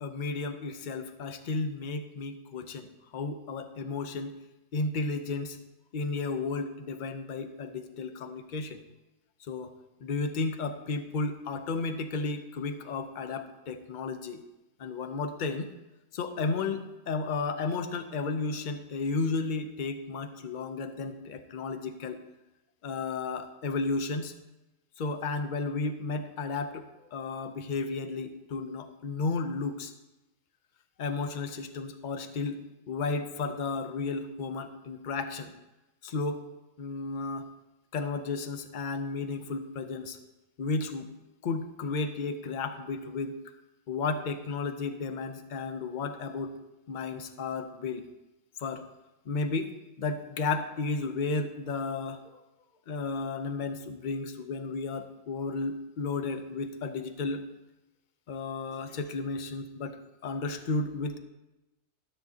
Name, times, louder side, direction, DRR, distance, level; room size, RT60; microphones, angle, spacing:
voice 1, 0.0-4.4 4.7-5.6 5.9-8.8 9.5-9.7 10.0-14.4 14.8-15.7 16.1-22.2 22.8-24.3 25.0-26.9 27.1-29.9 31.0-32.6 32.9-35.5 36.0-36.4 36.8-37.5 37.9-40.2 40.6-41.1 41.4-43.4 43.9-46.6 46.9-48.0 48.6-48.9 49.3-52.2 52.9-57.4 58.3-60.0 60.2-61.2, left 3 dB, 50° left, 8 dB, 0.6 m, -33 dB
13.0 x 7.7 x 2.7 m, 0.99 s
omnidirectional pair, 1.5 m